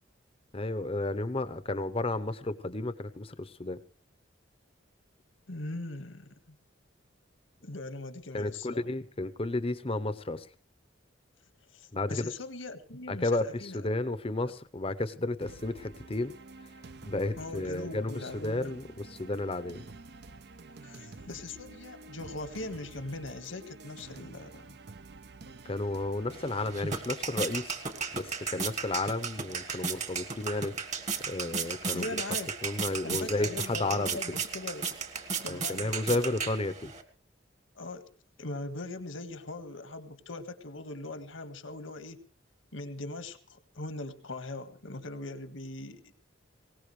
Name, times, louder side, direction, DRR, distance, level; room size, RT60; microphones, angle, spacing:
voice 1, 0.5-3.8 8.3-10.5 11.9-12.3 13.1-16.7 17.0-19.8 25.6-27.8 28.1-30.8 31.3-32.2 32.6-34.2 35.5-36.9, left 2 dB, 30° left, 12 dB, 0.8 m, -32 dB
voice 2, 5.5-6.3 7.6-8.8 11.7-13.9 14.4-14.5 17.4-18.7 20.8-24.7 31.9-32.5 33.0-34.9 35.4-36.4 37.7-38.1 38.4-42.2 42.7-46.0, left 2 dB, 80° left, 9 dB, 1.7 m, -40 dB
sound 1, 15.4-26.8, right 3 dB, 55° right, 0.8 m, -49 dB
sound 2, 26.3-37.0, right 5 dB, 35° right, 1.5 m, -35 dB
21.0 x 18.5 x 3.2 m, 0.39 s
head